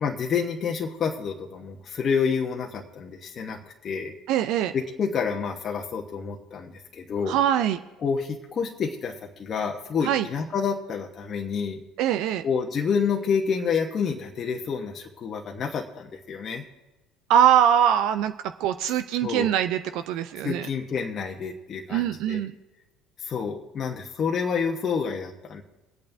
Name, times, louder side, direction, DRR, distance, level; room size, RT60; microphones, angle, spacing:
voice 1, 0.0-4.1 4.7-7.4 8.0-11.8 12.4-16.6 19.1-19.5 20.4-22.4 23.2-25.6, left 6 dB, 40° left, 1 dB, 1.1 m, -28 dB
voice 2, 4.3-4.7 7.3-7.8 10.0-10.3 12.0-12.4 17.3-18.3 18.6-20.7 21.9-22.5, right 10 dB, 65° right, 9 dB, 0.4 m, -22 dB
24.0 x 8.7 x 2.7 m, 1.1 s
hypercardioid pair, 65°, 0 cm